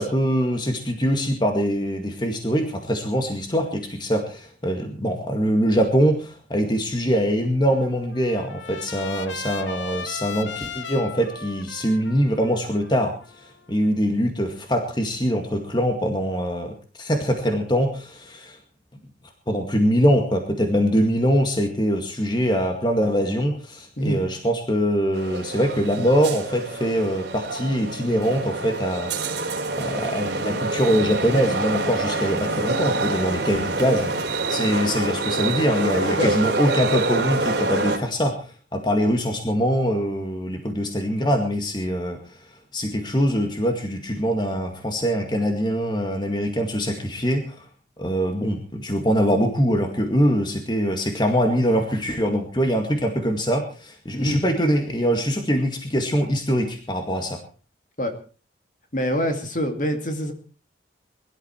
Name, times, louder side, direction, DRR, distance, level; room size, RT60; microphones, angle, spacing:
voice 1, 0.0-18.6 19.5-29.2 29.8-47.7 48.0-57.4, equal, 25° left, 5 dB, 2.0 m, -23 dB
Trumpet, 7.7-13.9, left 5 dB, 75° left, 1.3 m, -37 dB
sound 1, 25.1-38.0, right 3 dB, 60° right, 3.4 m, -26 dB
voice 2, 58.9-60.3, equal, 40° left, 6 dB, 2.5 m, -25 dB
22.0 x 12.5 x 4.5 m, 0.38 s
head